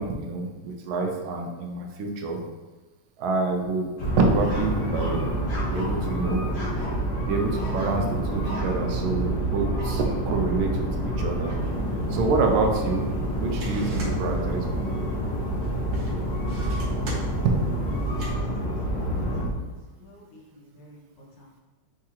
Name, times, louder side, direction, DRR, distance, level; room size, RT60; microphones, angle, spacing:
voice 1, 0.0-2.4 3.2-3.9 4.2-5.3 5.7-6.4 7.2-11.6 12.1-13.1 13.4-14.9, right 3 dB, 80° right, 2 dB, 1.4 m, -27 dB
sound 1, 4.0-19.4, right 1 dB, 35° left, 0.9 m, -28 dB
sound 2, 11.6-18.3, right 1 dB, 65° right, 1.6 m, -43 dB
voice 2, 18.9-19.2 19.5-19.7 20.0-21.6, equal, 65° left, -3 dB, 1.6 m, -53 dB
4.6 x 3.6 x 2.9 m, 1.3 s
omnidirectional pair, 2.3 m